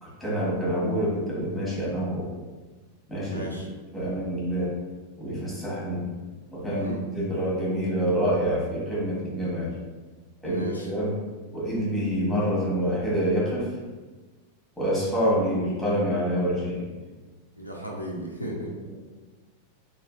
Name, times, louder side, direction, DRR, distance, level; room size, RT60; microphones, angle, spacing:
voice 1, 0.0-2.3 3.1-3.5 3.9-4.7 5.2-6.1 6.5-9.7 10.4-11.2 11.5-13.7 14.8-16.9 18.9-19.0, equal, ahead, -8 dB, 1.3 m, -27 dB
voice 2, 3.3-3.7 6.7-7.0 10.4-10.9 17.6-18.7, right 1 dB, 90° left, -2 dB, 0.4 m, -35 dB
3.2 x 2.5 x 2.4 m, 1.3 s
figure-of-eight pair, 90°, 0 cm